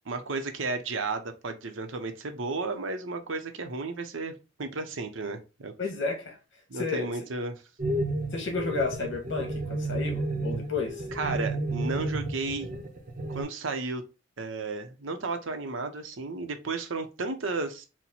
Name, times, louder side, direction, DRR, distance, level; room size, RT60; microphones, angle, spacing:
voice 1, 0.0-5.7 6.7-7.6 11.1-12.7 13.3-14.0 14.4-17.9, right 3 dB, 80° right, 0.8 m, -33 dB
voice 2, 5.8-6.4 6.7-7.1 8.3-11.1, left 4 dB, 65° left, 1.3 m, -32 dB
sound 1, 7.8-13.4, right 2 dB, 40° right, 0.8 m, -31 dB
4.4 x 2.2 x 4.1 m
head